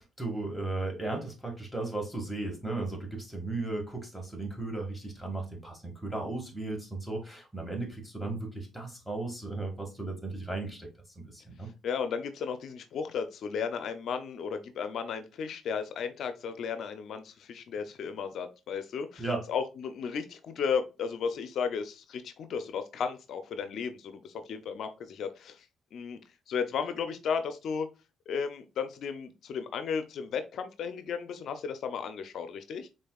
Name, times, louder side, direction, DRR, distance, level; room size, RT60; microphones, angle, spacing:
voice 1, 0.0-10.9 11.2-11.7 19.2-19.5, right 2 dB, ahead, 0 dB, 1.7 m, -35 dB
voice 2, 11.8-25.6 25.9-26.2 26.5-27.9 28.3-32.9, left 6 dB, 70° left, 9 dB, 0.5 m, -34 dB
5.3 x 3.7 x 2.3 m, 0.29 s
cardioid pair, 90°, 0 cm